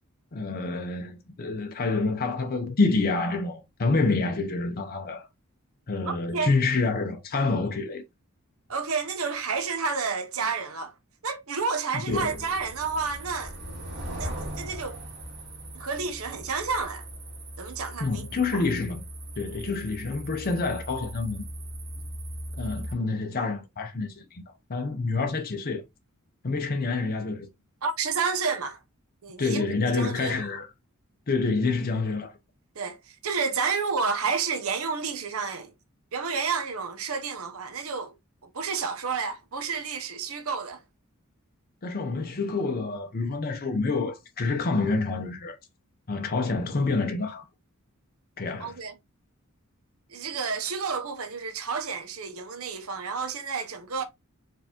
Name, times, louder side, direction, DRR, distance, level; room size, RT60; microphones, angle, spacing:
voice 1, 0.3-5.3 5.9-8.0 12.1-12.4 18.0-19.0 19.4-21.4 22.6-25.8 26.4-27.5 29.4-30.7 31.3-32.4 41.8-45.6 46.1-47.5 48.4-48.7, left 3 dB, 45° left, 0.7 m, -27 dB
voice 2, 6.0-6.5 8.7-10.9 11.2-13.6 14.2-15.0 15.7-17.1 17.6-18.7 27.8-28.8 29.2-30.5 32.7-35.7 36.1-38.1 38.4-40.8 48.6-48.9 50.1-54.0, right 5 dB, 75° right, 0.8 m, -30 dB
sound 1, 12.1-22.9, right 1 dB, 55° right, 1.8 m, -39 dB
4.6 x 3.4 x 2.9 m
head